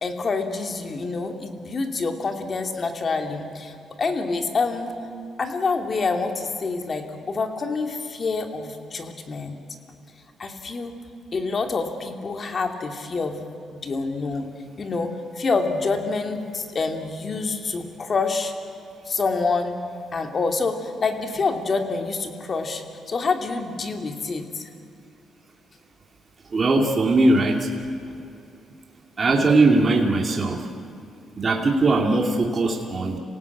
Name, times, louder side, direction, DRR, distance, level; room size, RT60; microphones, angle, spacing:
voice 1, 0.0-3.7 4.0-4.9 5.4-9.6 10.4-10.9 11.3-13.4 13.7-14.5 14.8-18.5 19.1-19.8 20.1-24.7, left 4 dB, 40° left, 5 dB, 2.5 m, -27 dB
voice 2, 26.5-27.7 29.2-30.7 31.3-33.2, right 2 dB, 35° right, 1 dB, 2.6 m, -20 dB
26.5 x 17.5 x 8.5 m, 2.6 s
cardioid pair, 90°, 0 cm